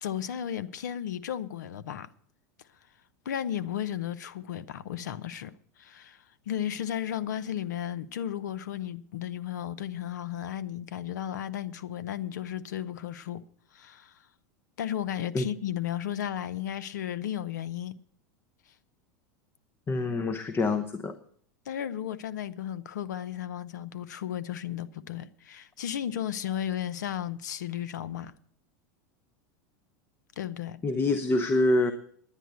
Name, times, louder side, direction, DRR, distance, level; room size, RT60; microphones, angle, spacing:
voice 1, 0.0-2.1 3.2-13.4 13.7-14.2 14.8-17.9 21.7-28.3 30.4-30.8, left 10 dB, 85° left, 0.7 m, -34 dB
voice 2, 19.9-21.2 30.8-31.9, left 2 dB, 25° left, 0.9 m, -26 dB
10.0 x 10.0 x 8.0 m
hypercardioid pair, 105°, 9 cm